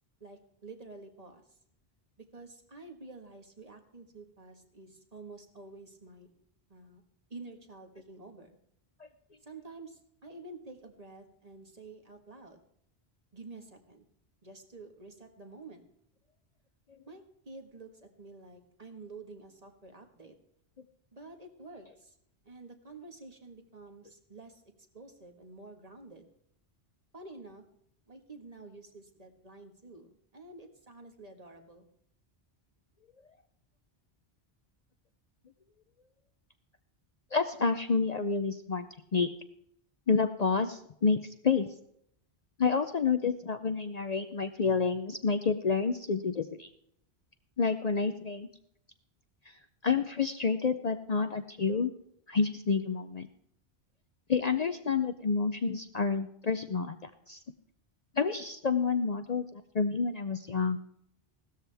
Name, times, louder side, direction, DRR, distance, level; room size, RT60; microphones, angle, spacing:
voice 1, 0.2-1.4 2.3-6.3 6.7-7.0 7.3-8.6 9.4-12.6 13.3-14.1 14.4-15.8 17.1-20.3 21.1-22.1 22.4-24.6 24.9-26.3 27.1-27.6 28.1-31.9, right 3 dB, 35° right, 5 dB, 1.6 m, -49 dB
voice 2, 37.3-38.9 39.1-39.3 40.1-41.7 42.6-46.7 47.6-48.5 49.5-51.9 52.3-53.3 54.3-57.4 58.1-60.8, left 5 dB, 45° left, 9 dB, 0.7 m, -29 dB
16.5 x 13.0 x 3.4 m, 0.71 s
omnidirectional pair, 1.1 m